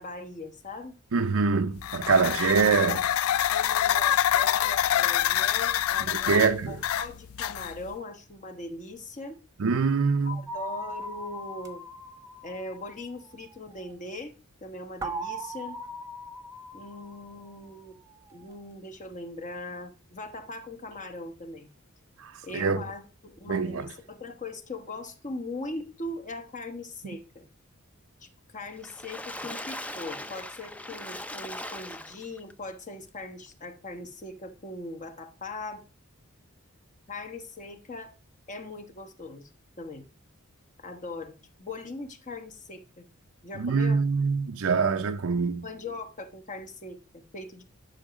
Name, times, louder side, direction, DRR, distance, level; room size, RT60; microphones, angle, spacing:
voice 1, 0.0-1.0 2.9-9.4 10.2-11.8 12.4-14.3 14.6-15.8 16.7-18.0 18.3-21.7 22.4-27.5 28.2-35.8 37.1-38.1 38.5-39.5 39.8-40.0 40.8-43.0 43.4-44.1 45.6-47.6, left 2 dB, 35° left, 1.1 m, -40 dB
voice 2, 1.1-3.0 6.1-6.8 9.6-10.4 22.2-22.8 23.5-23.8 43.6-45.6, right 5 dB, 70° right, 0.6 m, -24 dB
sound 1, 1.8-7.9, left 11 dB, 90° left, 0.3 m, -26 dB
sound 2, 10.5-13.3 15.0-17.8, right 1 dB, 15° right, 0.9 m, -39 dB
Water / Splash splatter, 28.7-32.5 33.1-33.2 33.5-33.6, left 1 dB, 5° left, 0.5 m, -39 dB
11.0 x 5.7 x 5.1 m
head